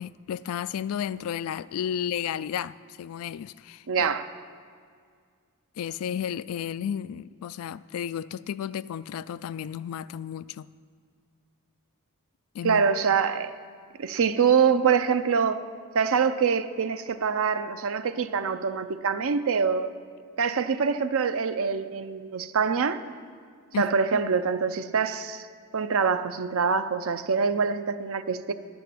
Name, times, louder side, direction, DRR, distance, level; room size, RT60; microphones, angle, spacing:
voice 1, 0.0-4.1 5.8-10.7 12.5-12.8 23.7-24.2, left 9 dB, 70° left, 16 dB, 0.3 m, -33 dB
voice 2, 3.9-4.3 12.6-13.5 14.0-15.6 15.9-19.9 20.4-23.0 23.8-25.5 25.7-28.5, right 6 dB, 65° right, 11 dB, 0.6 m, -25 dB
11.0 x 7.0 x 7.8 m, 2.1 s
head